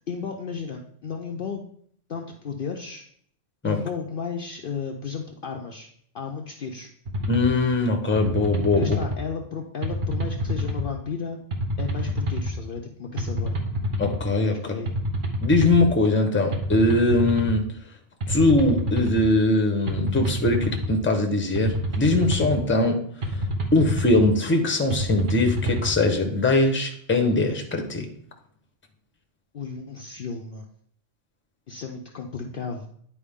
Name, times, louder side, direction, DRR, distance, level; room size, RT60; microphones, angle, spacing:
voice 1, 0.1-1.7 2.1-3.1 3.6-5.9 6.1-6.9 8.8-11.4 11.8-13.6 14.5-14.9 29.5-30.7 31.7-32.9, left 5 dB, 55° left, 2 dB, 0.7 m, -33 dB
sound 1, 7.1-7.5 8.2-9.2 9.8-10.9 11.5-12.5 13.2-14.2 14.9-15.9 16.5-17.6 18.2-19.2 19.9-20.9 21.5-22.6 23.2-24.3 24.9-25.9, equal, 45° right, 1.1 m, -27 dB
voice 2, 7.3-9.0 14.0-14.7 15.4-17.7 18.3-23.0 23.7-28.1, left 2 dB, 10° left, 4 dB, 0.8 m, -21 dB
9.9 x 4.6 x 3.6 m, 0.64 s
omnidirectional pair, 1.3 m